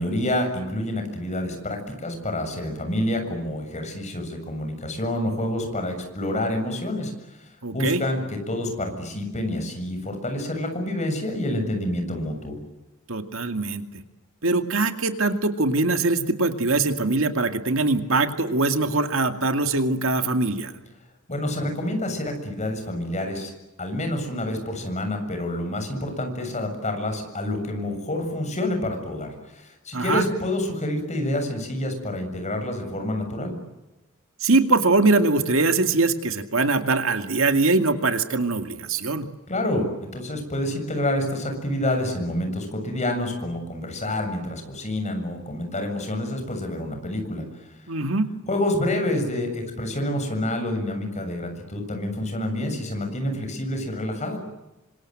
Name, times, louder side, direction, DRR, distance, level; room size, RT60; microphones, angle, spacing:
voice 1, 0.0-7.4 7.7-12.6 21.3-23.5 23.8-33.6 39.5-47.4 48.5-54.4, left 1 dB, 35° left, 5 dB, 7.3 m, -28 dB
voice 2, 7.6-8.0 13.1-13.8 14.4-20.7 29.9-30.2 34.4-39.3 47.9-48.3, right 3 dB, 70° right, 7 dB, 2.3 m, -22 dB
28.0 x 26.0 x 7.9 m, 1.0 s
head